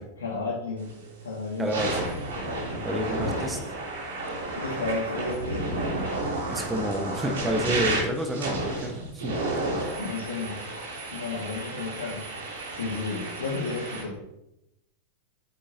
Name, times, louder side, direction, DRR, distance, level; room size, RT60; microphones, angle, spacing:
voice 1, 0.2-1.8 2.5-3.4 4.6-5.7 10.0-10.7 11.1-12.3 12.7-14.2, left 3 dB, 65° left, -5 dB, 1.9 m, -33 dB
sound 1, 0.8-1.1 1.5-14.0, right 2 dB, 60° right, 3.2 m, -32 dB
voice 2, 1.6-2.0 2.8-3.6 6.5-9.3 9.8-10.0, equal, 10° right, 3 dB, 1.3 m, -29 dB
8.7 x 8.3 x 2.8 m, 0.84 s
figure-of-eight pair, 90°, 0 cm